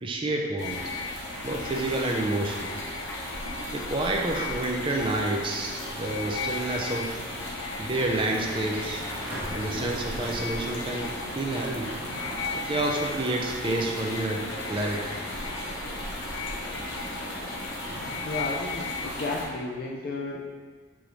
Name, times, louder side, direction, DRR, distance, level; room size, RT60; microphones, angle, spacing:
voice 1, 0.0-0.8 1.4-2.7 3.7-7.1 7.8-9.0 9.5-11.9 12.5-14.4 14.7-15.1, right 2 dB, 25° right, 0 dB, 0.4 m, -29 dB
sound 1, 0.6-19.5, left 2 dB, 65° left, 0.8 m, -35 dB
Sliding door, 5.9-11.5, right 1 dB, 90° right, 1.2 m, -44 dB
sound 2, 8.3-18.4, equal, 15° left, 0.8 m, -43 dB
voice 2, 18.2-20.4, left 2 dB, 50° left, -1 dB, 0.3 m, -33 dB
4.8 x 2.6 x 3.0 m, 1.5 s
head